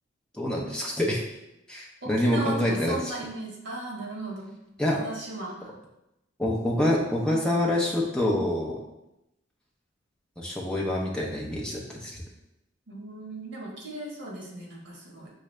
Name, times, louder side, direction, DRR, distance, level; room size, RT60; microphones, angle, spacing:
voice 1, 0.3-1.2 1.7-3.1 4.8-5.0 6.4-8.8 10.4-12.1, left 1 dB, 5° left, -4 dB, 0.7 m, -26 dB
voice 2, 2.0-4.5 4.9-5.7 12.9-15.3, right 2 dB, 65° right, -2 dB, 1.3 m, -36 dB
6.0 x 2.6 x 3.2 m, 0.89 s
head